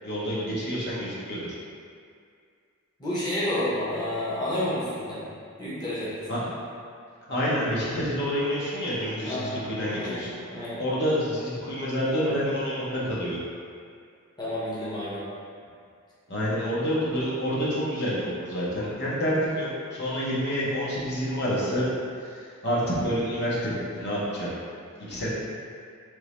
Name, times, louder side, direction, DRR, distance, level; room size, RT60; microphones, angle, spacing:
voice 1, 0.0-1.5 6.3-6.4 7.3-10.3 10.8-13.4 16.3-21.9 22.2-24.6 25.1-25.3, equal, 50° left, -7 dB, 0.9 m, -28 dB
voice 2, 3.0-5.3 5.6-6.4 9.2-9.6 9.9-10.8 14.4-15.2, left 1 dB, 20° left, -10 dB, 0.9 m, -30 dB
3.5 x 3.1 x 3.0 m, 2.2 s
head